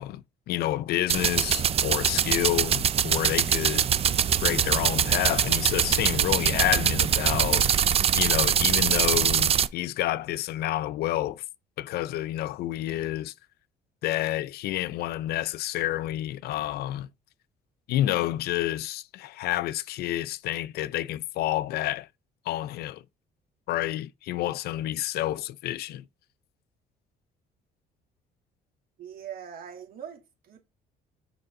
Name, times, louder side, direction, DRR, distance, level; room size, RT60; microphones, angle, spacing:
voice 1, 0.0-3.9 4.4-7.7 8.1-11.4 11.8-13.3 14.0-17.1 17.9-22.1 22.5-23.0 23.7-26.0, left 14 dB, 70° left, 0.4 m, -29 dB
sound 1, 1.1-9.7, right 8 dB, 35° right, 0.5 m, -23 dB
voice 2, 29.0-30.6, right 8 dB, 60° right, 2.7 m, -42 dB
6.7 x 4.7 x 3.7 m
cardioid pair, 110°, 17 cm